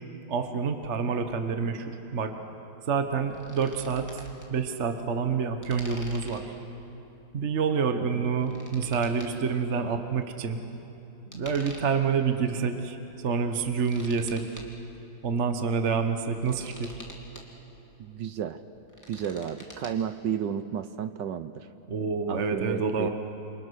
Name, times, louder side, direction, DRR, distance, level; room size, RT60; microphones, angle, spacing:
voice 1, 0.3-2.3 2.9-4.2 4.5-6.5 7.3-10.6 11.3-13.0 13.2-14.4 15.2-16.9 21.9-23.1, right 5 dB, 40° right, 7 dB, 1.3 m, -28 dB
sound 1, 3.2-4.5 5.6-6.6 8.1-9.3 11.3-12.1 12.8-12.9 13.4-14.8 16.1-17.4 18.7-19.9, equal, 10° left, 2.7 m, -47 dB
voice 2, 18.0-18.6 19.1-21.7 22.3-23.1, right 8 dB, 65° right, 11 dB, 1.2 m, -32 dB
28.5 x 28.0 x 6.4 m, 2.9 s
omnidirectional pair, 2.4 m